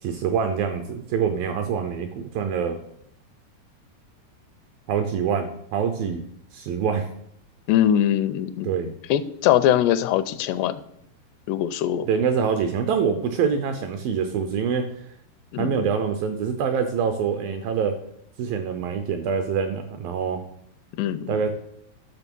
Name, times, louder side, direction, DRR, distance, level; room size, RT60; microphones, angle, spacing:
voice 1, 0.0-2.8 4.9-6.2 6.5-7.1 8.6-8.9 12.1-14.9 15.6-18.0 18.4-20.5 21.3-21.5, right 6 dB, 80° right, 7 dB, 2.1 m, -25 dB
voice 2, 7.7-8.7 9.1-10.8 11.5-12.1 15.5-15.9 20.9-21.4, left 11 dB, 85° left, 13 dB, 2.7 m, -22 dB
12.0 x 6.5 x 5.4 m, 0.72 s
omnidirectional pair, 4.9 m